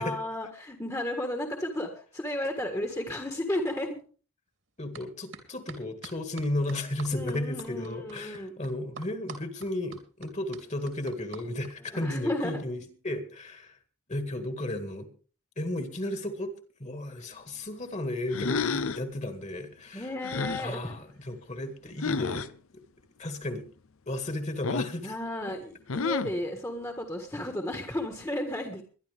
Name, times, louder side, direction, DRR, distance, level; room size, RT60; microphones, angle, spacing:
voice 1, 0.0-4.0 7.1-8.5 11.8-12.9 19.9-21.0 25.0-28.8, left 1 dB, 15° left, 4 dB, 1.6 m, -33 dB
voice 2, 4.8-13.8 14.1-15.1 15.6-16.5 16.8-20.1 20.6-22.5 23.2-23.6 24.1-25.1, left 1 dB, 35° left, 7 dB, 2.0 m, -34 dB
sound 1, 4.9-5.0 5.3-12.0, right 4 dB, 70° right, 2.9 m, -45 dB
sound 2, 18.3-19.1 20.2-20.7 22.0-22.5 24.6-25.0 25.9-26.4, left 4 dB, 75° left, 0.7 m, -30 dB
21.5 x 11.5 x 3.5 m, 0.38 s
head